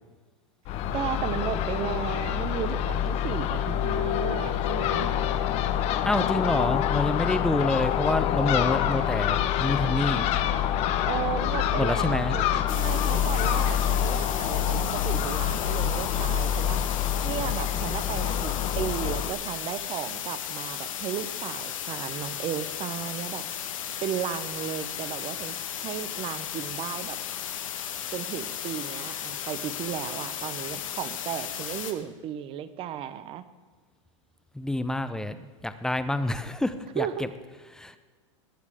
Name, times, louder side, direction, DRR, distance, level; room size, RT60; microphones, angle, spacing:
Crow / Gull seagull, 0.7-19.3, left 10 dB, 40° left, 0.9 m, -26 dB
voice 1, 0.9-5.1 11.0-17.0 17.2-23.4 24.0-27.2 28.1-33.4 37.0-37.3, right 10 dB, 35° right, 14 dB, 0.8 m, -34 dB
voice 2, 6.0-10.3 11.8-12.4 34.5-37.3 37.7-38.0, left 1 dB, 5° left, 11 dB, 0.6 m, -27 dB
sound 1, 12.7-31.9, left 9 dB, 85° left, 1.6 m, -35 dB
20.0 x 7.4 x 4.9 m, 1.4 s
supercardioid pair, 135°, 17 cm